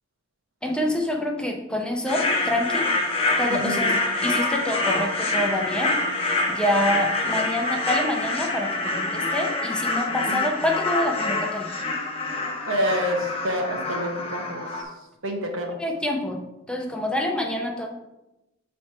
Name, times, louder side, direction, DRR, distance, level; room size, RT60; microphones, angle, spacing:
voice 1, 0.6-2.9 3.4-3.9 4.2-5.9 6.5-11.7 15.8-16.4 16.7-17.9, left 1 dB, 5° left, 1 dB, 0.7 m, -26 dB
sound 1, 2.1-14.8, left 2 dB, 30° left, 0.9 m, -26 dB
voice 2, 3.5-4.0 10.1-10.5 12.7-14.9 15.2-15.8, equal, 80° right, 3 dB, 1.1 m, -28 dB
7.2 x 3.3 x 4.3 m, 0.94 s
head